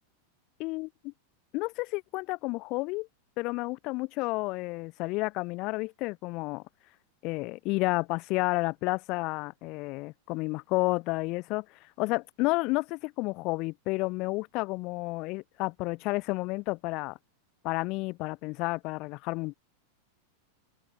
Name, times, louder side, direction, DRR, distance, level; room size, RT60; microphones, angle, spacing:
voice 1, 0.6-1.1 1.5-3.1 3.4-6.6 7.2-11.6 12.0-17.2 17.6-19.5, left 24 dB, 40° left, 1.3 m, -31 dB
figure-of-eight pair, 90°, 0 cm